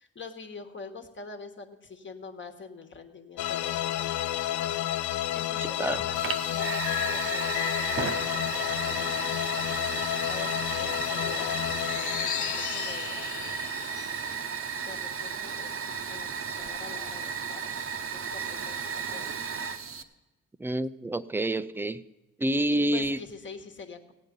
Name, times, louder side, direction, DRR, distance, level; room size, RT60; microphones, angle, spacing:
voice 1, 0.0-4.1 4.5-4.9 5.3-9.5 9.8-13.5 14.8-16.3 16.6-17.8 18.1-19.3 22.7-24.1, left 4 dB, 40° left, 1.3 m, -45 dB
sound 1, 3.4-14.8, left 12 dB, 75° left, 0.5 m, -31 dB
voice 2, 5.6-6.0 20.6-22.0 22.4-23.2, right 1 dB, 10° right, 0.4 m, -28 dB
Fire, 6.1-20.0, right 6 dB, 45° right, 0.8 m, -34 dB
16.0 x 9.0 x 5.3 m
cardioid pair, 90°, 30 cm